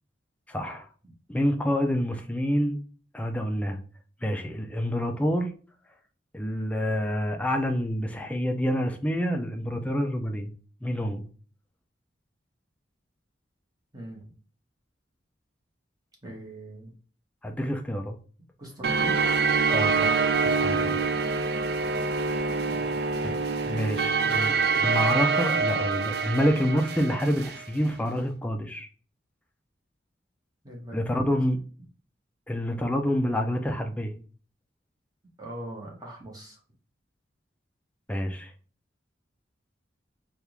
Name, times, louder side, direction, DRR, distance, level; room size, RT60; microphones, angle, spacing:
voice 1, 0.5-0.9 1.3-2.8 3.1-3.8 4.2-5.5 6.3-10.5 10.8-11.2 17.4-18.2 19.7-21.0 23.2-23.4 23.7-28.9 30.9-31.6 32.5-34.2 38.1-38.5, equal, 5° left, 4 dB, 0.4 m, -27 dB
voice 2, 13.9-14.3 16.2-16.9 18.6-19.2 22.6-23.0 30.6-31.3 35.4-36.6, right 1 dB, 20° right, -2 dB, 1.0 m, -41 dB
sound 1, 18.8-27.6, right 4 dB, 55° right, 0.4 m, -25 dB
3.4 x 2.4 x 2.9 m, 0.40 s
head